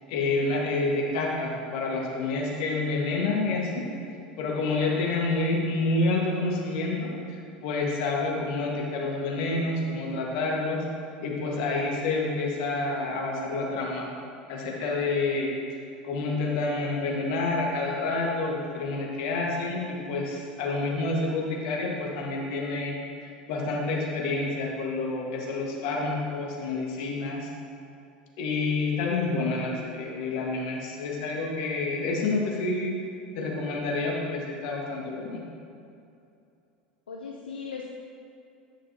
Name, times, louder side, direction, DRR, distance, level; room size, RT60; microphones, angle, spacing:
voice 1, 0.1-3.8 4.4-7.1 7.6-10.8 11.2-14.0 14.5-15.5 16.0-27.5 28.4-32.9 33.3-35.4, left 3 dB, 65° left, -2 dB, 1.5 m, -28 dB
voice 2, 37.1-37.9, left 6 dB, 85° left, -1 dB, 0.6 m, -38 dB
9.8 x 6.0 x 2.8 m, 2.6 s
hypercardioid pair, 80°, 5 cm